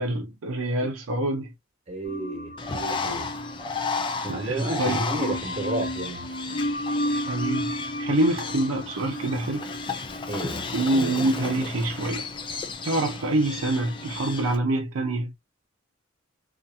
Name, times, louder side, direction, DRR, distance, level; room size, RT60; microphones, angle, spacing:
voice 1, 0.0-1.5 4.3-5.0 7.1-9.7 10.7-12.3 12.8-15.3, right 2 dB, 85° right, 0.5 m, -26 dB
voice 2, 1.9-3.3 4.2-6.3 10.3-10.8, right 1 dB, 35° right, 1.1 m, -32 dB
sound 1, 2.1-14.3, equal, 45° left, 1.1 m, -34 dB
Bird, 2.6-14.6, left 4 dB, 25° left, 0.4 m, -34 dB
2.7 x 2.4 x 2.2 m
head